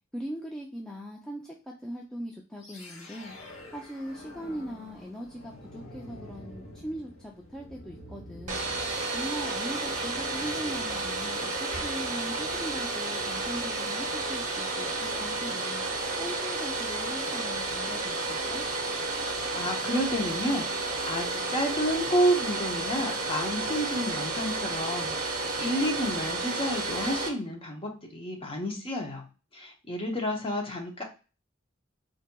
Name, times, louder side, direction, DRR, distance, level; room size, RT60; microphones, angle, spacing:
voice 1, 0.1-3.4 3.7-8.7 9.1-15.8 16.2-18.7, equal, 5° left, -2 dB, 0.3 m, -40 dB
sound 1, 2.6-13.7, left 1 dB, 85° left, 0.9 m, -48 dB
Domestic sounds home sounds, 8.5-27.3, right 2 dB, 40° right, 0.6 m, -31 dB
voice 2, 19.1-29.2 29.5-31.0, equal, 25° left, 2 dB, 0.7 m, -30 dB
4.1 x 2.6 x 2.2 m, 0.32 s
head